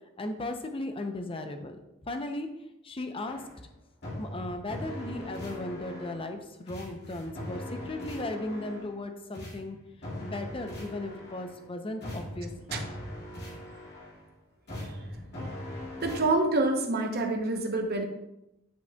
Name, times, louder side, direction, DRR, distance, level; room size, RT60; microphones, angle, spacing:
voice 1, 0.2-1.8 2.0-2.5 2.8-3.4 4.2-9.8 10.2-12.8, left 2 dB, 25° left, 6 dB, 0.6 m, -36 dB
sound 1, 3.3-3.6 4.0-6.4 6.7-9.0 9.3-11.6 12.0-14.3 14.7-16.3, left 1 dB, 55° left, 2.1 m, -40 dB
voice 2, 16.0-18.0, right 2 dB, 50° right, 4 dB, 0.9 m, -27 dB
9.2 x 5.3 x 2.3 m, 0.89 s
head